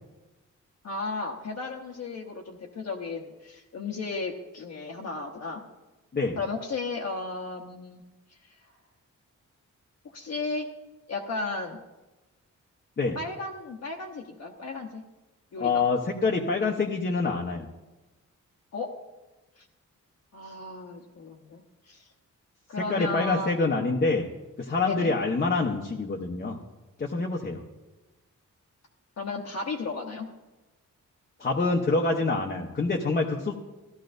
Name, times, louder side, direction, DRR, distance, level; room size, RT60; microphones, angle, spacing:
voice 1, 0.8-5.7 6.4-8.0 8.4-8.6 10.1-10.7 11.1-11.8 13.1-15.0 15.5-15.8 18.7-18.9 19.6-19.7 20.3-22.1 22.7-23.6 24.8-25.1 29.2-30.3, left 3 dB, 60° left, 0 dB, 1.0 m, -34 dB
voice 2, 15.6-17.7 22.9-24.3 24.6-26.6 27.0-27.6 31.4-33.5, left 3 dB, 30° left, 1 dB, 0.9 m, -26 dB
16.0 x 13.0 x 2.6 m, 1.1 s
wide cardioid pair, 155°, 31 cm